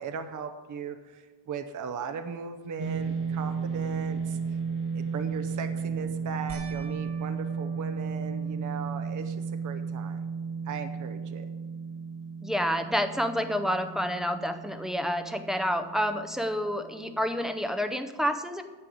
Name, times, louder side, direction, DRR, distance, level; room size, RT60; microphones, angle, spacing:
voice 1, 0.0-4.6 4.9-10.2 10.6-11.5, right 6 dB, 45° right, 9 dB, 0.7 m, -38 dB
sound 1, 2.8-17.2, right 5 dB, 30° right, 1.2 m, -34 dB
sound 2, 6.5-9.1 9.7-10.3 10.6-10.7 13.9-14.0, right 3 dB, 80° right, 1.7 m, -50 dB
voice 2, 12.4-18.6, equal, ahead, 7 dB, 0.5 m, -29 dB
9.8 x 6.4 x 8.4 m, 1.4 s
wide cardioid pair, 175°, 42 cm